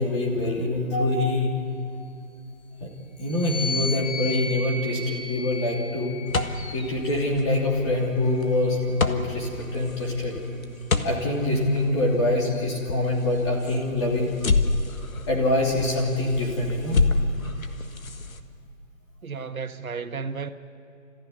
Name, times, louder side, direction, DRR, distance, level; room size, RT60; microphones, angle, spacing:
voice 1, 0.0-1.6 2.8-2.9 3.2-6.2 6.7-10.3 11.0-14.3 15.3-17.0, left 2 dB, 20° left, 3.1 m, -25 dB
sound 1, 3.2-6.8 7.7-9.3, left 3 dB, 60° left, 7.5 m, -35 dB
sound 2, 6.3-18.4, left 3 dB, 85° left, 1.6 m, -30 dB
voice 2, 19.2-20.5, right 5 dB, 90° right, 1.5 m, -33 dB
28.0 x 15.0 x 9.8 m
hypercardioid pair, 170°, 41 cm